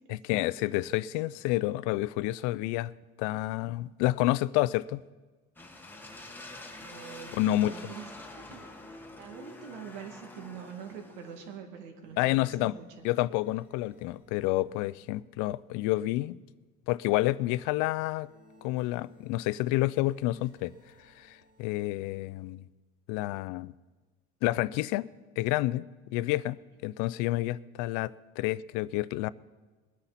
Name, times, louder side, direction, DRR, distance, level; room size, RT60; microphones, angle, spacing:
voice 1, 0.1-2.9 3.2-5.0 7.3-7.7 12.2-12.7 13.0-16.4 16.9-18.3 18.6-20.7 21.2-22.6 23.1-23.7 24.4-25.1 25.4-25.8 26.1-29.3, left 17 dB, 75° left, 0.5 m, -29 dB
sound 1, 5.6-11.6, left 2 dB, 5° left, 1.1 m, -47 dB
voice 2, 6.8-8.7 9.1-13.1, right 7 dB, 85° right, 2.2 m, -45 dB
sound 2, 12.0-15.5 17.8-22.3, equal, 25° right, 2.2 m, -60 dB
21.5 x 9.9 x 4.2 m
cardioid pair, 140°, 31 cm